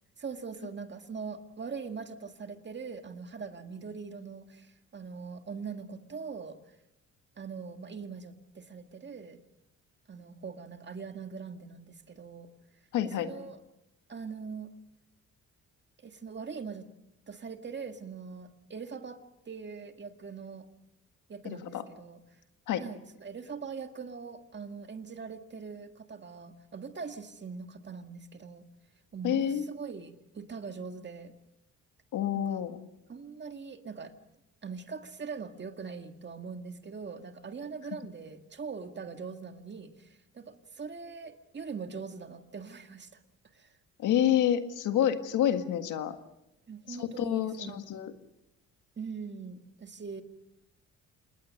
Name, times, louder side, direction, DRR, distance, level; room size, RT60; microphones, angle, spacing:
voice 1, 0.2-6.6 7.4-9.4 10.1-12.5 13.0-13.6 14.1-14.7 16.0-16.9 17.3-19.2 19.5-20.7 21.3-22.2 22.8-28.7 29.1-31.3 32.3-32.6 33.1-34.1 34.6-43.2 43.5-43.7 46.7-47.8 49.0-50.2, right 5 dB, 35° right, 7 dB, 1.9 m, -42 dB
voice 2, 12.9-13.3 21.5-21.8 22.7-22.8 29.2-29.7 32.1-32.8 44.0-46.2 46.9-48.1, left 10 dB, 80° left, 8 dB, 1.8 m, -28 dB
27.0 x 20.5 x 6.6 m, 0.90 s
cardioid pair, 90°, 30 cm